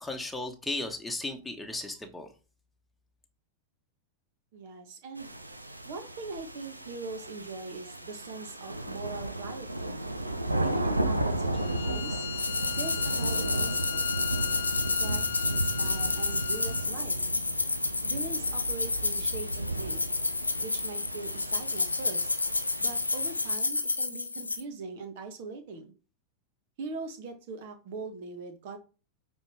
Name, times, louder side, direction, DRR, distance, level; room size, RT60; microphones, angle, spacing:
voice 1, 0.0-2.3, left 2 dB, 5° left, 2 dB, 1.4 m, -35 dB
voice 2, 4.5-5.3 5.9-9.9 10.6-12.2 12.7-14.1 15.0-15.2 15.5-17.1 18.0-20.1 20.6-22.3 22.8-25.9 26.8-28.8, right 3 dB, 50° right, 7 dB, 1.8 m, -41 dB
sound 1, 5.2-23.6, right 1 dB, 85° right, 0.8 m, -34 dB
Bowed string instrument, 11.5-16.9, left 11 dB, 60° left, 0.3 m, -38 dB
sound 2, 12.4-24.6, left 3 dB, 80° left, 0.9 m, -30 dB
8.7 x 3.8 x 4.9 m, 0.35 s
figure-of-eight pair, 90°, 0 cm